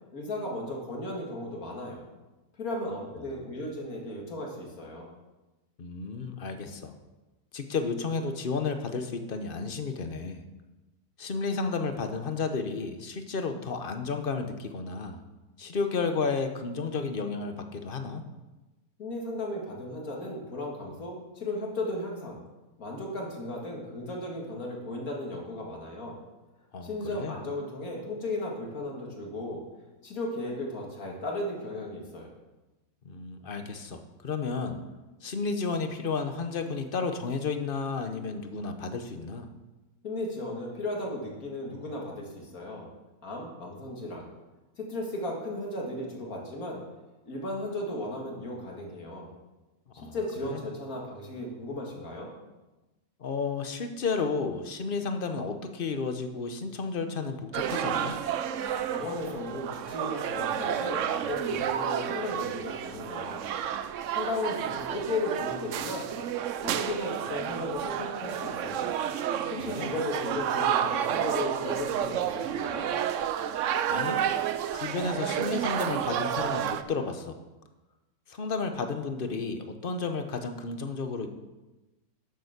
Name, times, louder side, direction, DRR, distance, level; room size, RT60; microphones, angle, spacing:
voice 1, 0.1-2.0 2.6-5.1 19.0-22.4 22.8-26.2 26.8-29.6 30.0-32.4 40.0-42.9 43.2-44.3 44.8-46.8 47.3-49.3 49.9-52.3 58.9-63.4 64.1-66.1 66.6-68.9 69.5-72.9, left 1 dB, 65° left, -1 dB, 2.6 m, -35 dB
voice 2, 5.8-6.9 7.5-10.4 11.2-15.2 15.6-18.2 26.7-27.3 33.0-34.8 35.2-39.5 50.0-50.2 50.4-50.6 53.2-58.2 69.6-69.9 73.9-74.2 74.7-77.4 78.3-81.3, left 4 dB, 40° left, 7 dB, 0.9 m, -32 dB
sound 1, 57.5-76.8, right 9 dB, 65° right, 0.8 m, -31 dB
10.5 x 6.8 x 6.6 m, 1.1 s
omnidirectional pair, 1.6 m